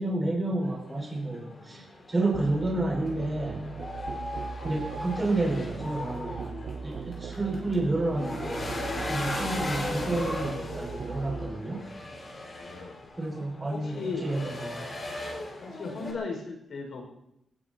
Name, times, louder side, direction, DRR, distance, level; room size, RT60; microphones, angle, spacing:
voice 1, 0.0-3.6 4.6-6.5 6.8-8.7 9.0-11.8 13.2-14.9, right 2 dB, 20° right, 0 dB, 5.5 m, -30 dB
sound 1, 0.6-16.1, left 2 dB, 35° left, 5.4 m, -38 dB
voice 2, 1.2-1.9 12.6-13.0 13.7-14.3 15.6-17.0, left 4 dB, 60° left, 2 dB, 5.6 m, -37 dB
Musical instrument, 2.3-11.6, right 6 dB, 55° right, 0.8 m, -40 dB
22.5 x 19.5 x 3.0 m, 0.79 s
wide cardioid pair, 155°, 0 cm